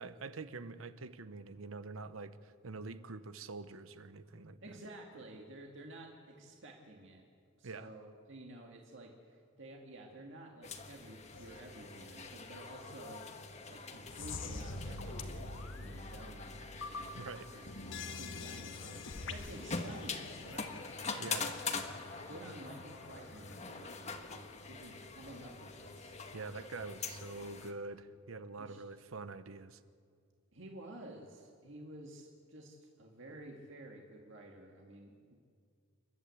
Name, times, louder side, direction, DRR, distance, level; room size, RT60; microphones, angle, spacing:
voice 1, 0.0-4.6 7.6-7.9 17.1-17.5 21.2-21.5 26.3-29.8, right 3 dB, 90° right, 13 dB, 0.9 m, -45 dB
voice 2, 4.6-7.3 7.6-13.3 13.7-17.2 17.5-17.6 17.9-21.4 22.3-24.0 24.3-26.2 28.6-28.8 30.5-35.3, right 1 dB, 65° right, 1 dB, 2.0 m, -52 dB
sound 1, 10.6-27.7, left 4 dB, 35° left, 1.4 m, -44 dB
sound 2, 11.3-12.3 12.8-12.9 13.4-13.5 14.1-23.6, left 3 dB, 65° left, 1.4 m, -46 dB
29.0 x 12.0 x 8.3 m, 2.2 s
head